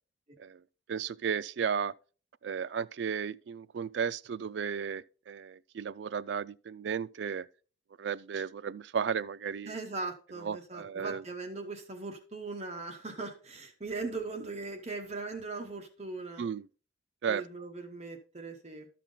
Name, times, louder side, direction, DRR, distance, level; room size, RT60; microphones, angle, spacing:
voice 1, 0.9-1.9 2.4-7.5 8.0-9.8 10.4-11.2 16.4-16.7 17.2-17.4, right 7 dB, 60° right, 0.3 m, -34 dB
voice 2, 9.7-16.4 17.3-18.9, right 3 dB, 35° right, 1.0 m, -39 dB
12.5 x 5.8 x 3.8 m
head